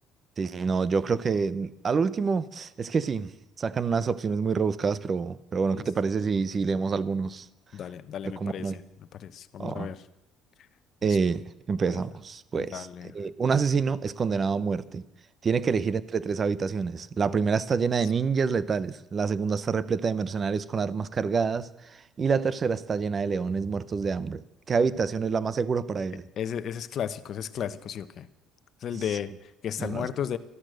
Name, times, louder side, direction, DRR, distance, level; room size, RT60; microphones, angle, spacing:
voice 1, 0.4-3.3 3.6-7.5 8.4-8.8 9.6-9.9 11.0-12.9 13.1-15.0 15.4-24.4 24.7-26.2 29.8-30.1, right 5 dB, 30° right, 0.6 m, -27 dB
voice 2, 7.7-8.8 9.1-10.0 11.0-11.2 11.9-12.0 12.6-13.1 26.4-28.3 28.8-30.4, left 9 dB, 45° left, 0.9 m, -34 dB
13.5 x 11.5 x 7.8 m
cardioid pair, 140°, 0 cm